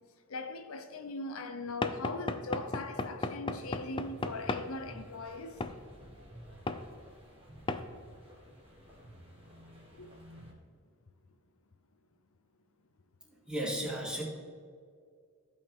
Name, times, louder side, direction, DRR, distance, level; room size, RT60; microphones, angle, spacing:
voice 1, 0.3-5.6 10.0-10.1, left 2 dB, 70° left, 0.7 m, -40 dB
Knock / Wood, 1.8-4.7 5.6-5.8 6.7-6.8 7.7-7.9, left 3 dB, 25° left, 0.4 m, -35 dB
sound 1, 3.5-10.5, equal, 25° right, 1.8 m, -53 dB
voice 2, 13.2-14.2, right 1 dB, 5° right, 2.4 m, -35 dB
15.5 x 5.4 x 3.6 m
head